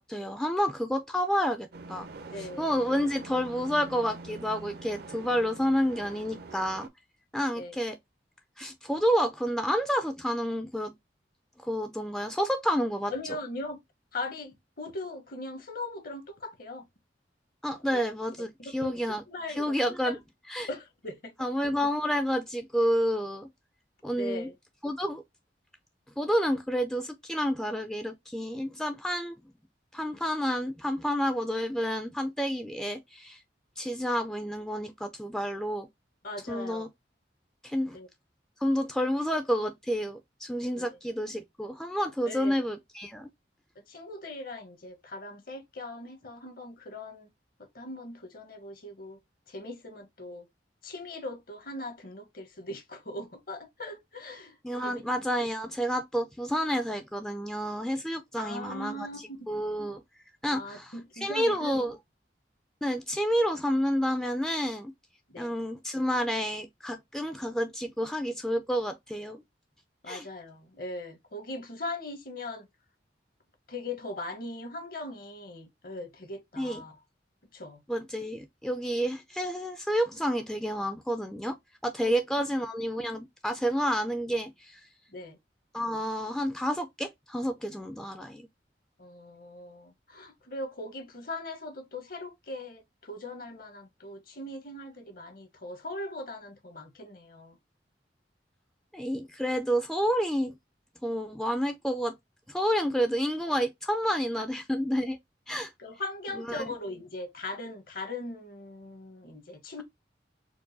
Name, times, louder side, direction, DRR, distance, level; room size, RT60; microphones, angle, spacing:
voice 1, 0.0-2.1 2.4-6.9 7.3-8.0 8.6-10.9 11.6-13.1 17.6-19.2 19.6-20.2 20.5-20.7 21.4-23.5 24.0-24.5 24.8-25.2 26.2-29.4 29.9-33.4 33.8-35.9 36.5-36.9 37.6-38.0 38.6-43.3 54.6-59.1 59.5-60.0 60.4-60.9 61.2-62.0 62.8-64.9 65.4-69.4 70.1-70.3 76.6-76.8 77.9-81.6 81.8-84.8 85.7-88.4 98.9-100.5 101.0-102.1 102.5-105.2 105.5-105.7 106.3-106.7, equal, 5° left, 0.3 m, -29 dB
sound 1, 1.7-6.9, right 3 dB, 60° right, 0.5 m, -45 dB
voice 2, 2.3-2.7 7.6-7.8 13.1-13.8 14.1-16.8 17.9-18.0 18.6-18.9 19.3-19.7 20.1-20.2 20.7-21.3 24.2-24.5 36.2-36.9 37.9-38.1 40.8-41.0 42.3-42.6 43.9-47.3 47.7-49.2 49.5-50.5 50.8-54.6 54.8-55.0 58.4-59.4 60.5-61.8 65.3-65.5 70.0-72.7 73.7-76.9 77.5-77.8 82.0-82.5 85.1-85.4 89.0-97.6 104.4-104.5 105.5-109.8, left 2 dB, 55° left, 1.0 m, -40 dB
4.6 x 2.2 x 2.5 m
head